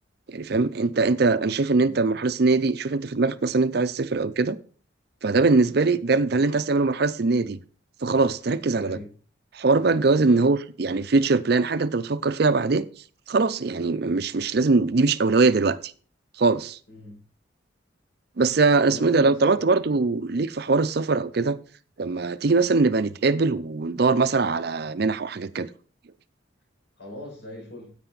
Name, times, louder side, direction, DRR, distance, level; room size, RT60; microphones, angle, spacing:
voice 1, 0.3-4.6 5.2-7.6 8.0-9.0 9.5-12.9 13.3-15.9 16.4-16.8 18.4-21.6 22.0-25.7, right 3 dB, 50° right, 0.5 m, -22 dB
voice 2, 8.8-9.1 10.1-10.4 16.9-17.2 18.8-20.0 27.0-28.0, left 1 dB, 65° left, 6.2 m, -41 dB
10.0 x 8.4 x 4.0 m
head